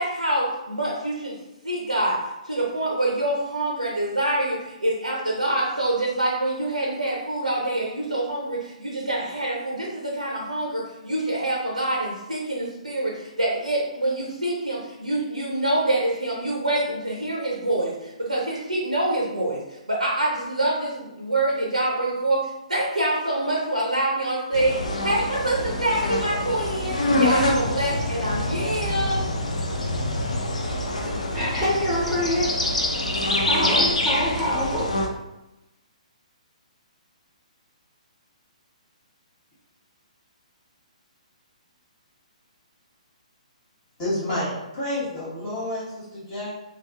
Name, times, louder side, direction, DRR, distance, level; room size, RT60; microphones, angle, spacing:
voice 1, 0.0-1.4 1.6-2.2 2.4-29.2, right 1 dB, 85° right, -3 dB, 0.6 m, -26 dB
sound 1, 24.5-35.1, left 1 dB, 70° left, 0.6 m, -25 dB
voice 2, 31.3-32.5 33.4-34.9, equal, 5° left, -8 dB, 1.0 m, -25 dB
voice 3, 44.0-46.6, left 1 dB, 25° left, -9 dB, 1.2 m, -29 dB
3.3 x 2.3 x 2.6 m, 0.95 s
figure-of-eight pair, 125°, 4 cm